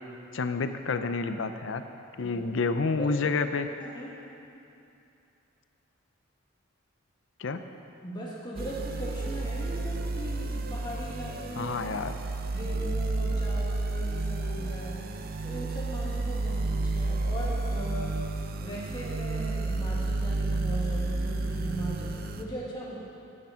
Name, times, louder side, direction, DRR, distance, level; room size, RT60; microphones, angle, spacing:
voice 1, 0.3-1.8 2.2-3.7 7.4-7.6 11.6-12.1, left 4 dB, 65° left, 9 dB, 0.5 m, -29 dB
voice 2, 3.8-4.2 8.0-11.8 12.5-23.0, equal, 20° left, -5 dB, 1.6 m, -39 dB
sound 1, 8.6-22.4, right 2 dB, 50° right, 0.6 m, -31 dB
10.5 x 8.7 x 5.7 m, 2.7 s
head